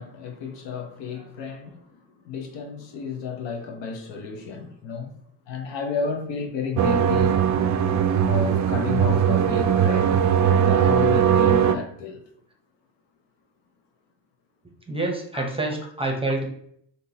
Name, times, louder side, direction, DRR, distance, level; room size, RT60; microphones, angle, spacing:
voice 1, 0.0-5.1 5.5-7.4 8.2-12.2 15.3-15.5, left 5 dB, 65° left, 0.8 m, -32 dB
sound 1, 6.8-11.8, right 8 dB, 40° right, 0.4 m, -20 dB
voice 2, 14.9-16.5, right 2 dB, 10° right, 0.8 m, -28 dB
3.7 x 2.7 x 2.7 m
supercardioid pair, 70°, 47 cm